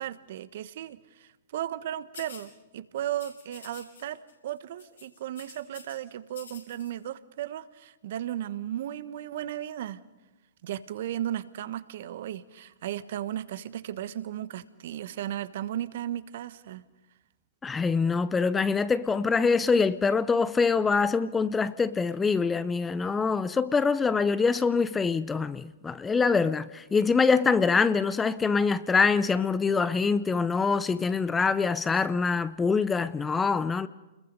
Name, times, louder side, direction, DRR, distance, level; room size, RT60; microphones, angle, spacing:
voice 1, 0.0-10.0 10.6-16.8, right 12 dB, 55° right, 1.2 m, -35 dB
sound 1, 2.1-2.5 3.1-4.0 4.3-4.5 4.8-6.0 6.3-6.9, left 6 dB, 75° left, 6.6 m, -48 dB
voice 2, 17.6-33.9, left 5 dB, 15° left, 0.7 m, -24 dB
29.5 x 21.5 x 5.3 m
hypercardioid pair, 115°, 0 cm